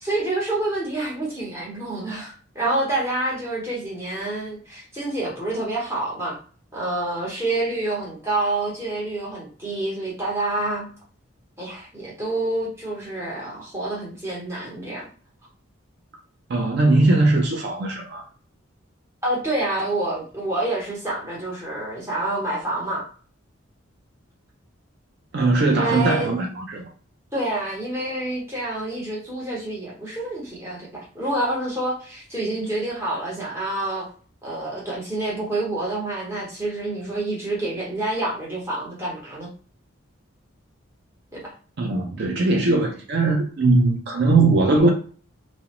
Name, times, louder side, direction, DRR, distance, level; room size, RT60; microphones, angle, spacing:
voice 1, 0.0-6.4 6.7-10.9 11.6-15.1 19.2-23.1 25.7-26.3 27.3-34.1 34.4-39.5 41.4-41.5, right 2 dB, 15° right, 0.8 m, -27 dB
voice 2, 16.5-18.2 25.3-26.9 41.8-44.9, right 2 dB, 55° right, 0.4 m, -20 dB
2.4 x 2.0 x 2.9 m
head